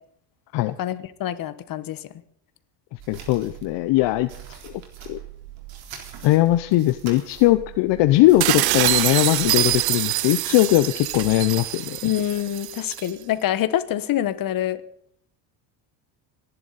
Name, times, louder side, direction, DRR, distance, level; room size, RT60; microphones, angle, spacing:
voice 1, 0.8-2.0 12.0-14.8, left 12 dB, 45° left, 12 dB, 1.3 m, -26 dB
sound 1, 3.0-9.8, right 9 dB, 70° right, 3.9 m, -42 dB
voice 2, 3.1-4.3 5.1-5.2 6.2-12.0, left 16 dB, 60° left, 11 dB, 0.8 m, -19 dB
sound 2, 8.4-13.1, right 17 dB, 50° right, 0.6 m, -24 dB
28.5 x 11.0 x 4.1 m, 0.66 s
cardioid pair, 130°, 48 cm